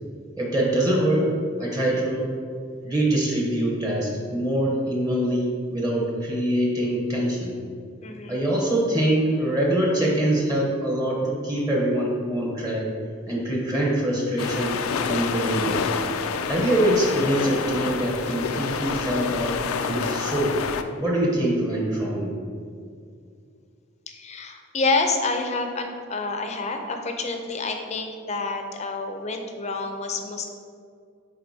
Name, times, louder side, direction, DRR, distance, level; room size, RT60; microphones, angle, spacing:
voice 1, 0.4-1.3 1.6-2.3 2.8-7.5 8.3-12.9 13.3-14.8 15.1-15.8 16.5-20.6 21.0-22.3, right 1 dB, 20° right, -3 dB, 0.9 m, -24 dB
voice 2, 8.0-8.5 24.1-30.5, left 3 dB, 35° left, 4 dB, 0.5 m, -28 dB
sound 1, 14.4-20.8, left 5 dB, 90° left, 0.4 m, -28 dB
9.7 x 3.9 x 2.7 m, 2.3 s
head